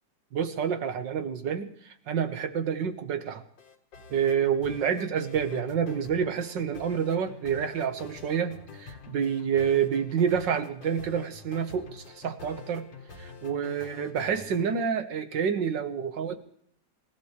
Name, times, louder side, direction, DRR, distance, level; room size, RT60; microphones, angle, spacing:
voice 1, 0.3-3.4 4.1-12.9 13.2-16.3, right 7 dB, 75° right, 9 dB, 2.0 m, -28 dB
sound 1, 3.6-14.8, left 5 dB, 85° left, 2.3 m, -46 dB
27.0 x 15.0 x 3.3 m, 0.64 s
omnidirectional pair, 2.0 m